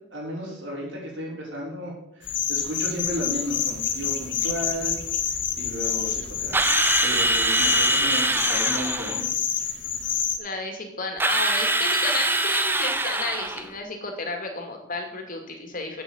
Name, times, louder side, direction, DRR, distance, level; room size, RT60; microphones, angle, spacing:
voice 1, 0.1-5.0 5.3-9.8, equal, 70° right, -3 dB, 5.6 m, -34 dB
sound 1, 2.2-10.4, left 8 dB, 70° left, 1.8 m, -28 dB
Drill, 6.5-9.2 11.2-13.7, right 1 dB, 10° right, 0.7 m, -23 dB
voice 2, 10.4-16.0, left 3 dB, 45° left, 3 dB, 2.4 m, -32 dB
8.4 x 7.9 x 8.8 m, 0.83 s
head